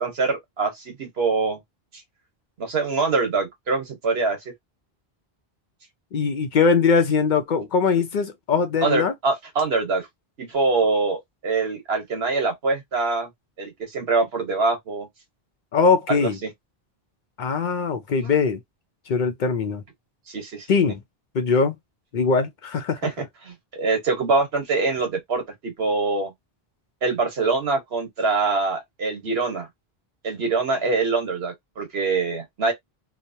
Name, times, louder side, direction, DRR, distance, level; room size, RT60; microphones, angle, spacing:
voice 1, 0.0-1.6 2.6-4.4 8.8-10.1 10.4-13.3 13.6-15.1 16.1-16.5 18.2-18.3 20.3-20.7 23.0-26.3 27.0-29.7 30.2-32.7, right 3 dB, 80° right, 1.3 m, -24 dB
voice 2, 6.1-9.1 15.7-16.4 17.4-18.6 19.1-19.8 20.7-21.0 21.3-21.8 22.1-23.0, left 5 dB, 60° left, 0.6 m, -21 dB
3.0 x 2.0 x 2.6 m
omnidirectional pair, 1.0 m